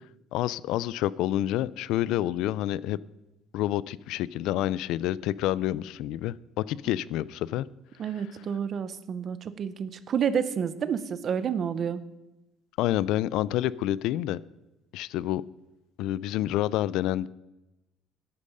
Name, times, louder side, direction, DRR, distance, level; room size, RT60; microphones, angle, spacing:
voice 1, 0.3-3.0 3.5-7.7 12.8-14.4 14.9-15.4 16.0-17.3, left 14 dB, 65° left, 21 dB, 0.3 m, -28 dB
voice 2, 8.0-12.0, right 7 dB, 30° right, 14 dB, 0.6 m, -29 dB
10.5 x 8.5 x 5.4 m, 0.98 s
cardioid pair, 180°, 0 cm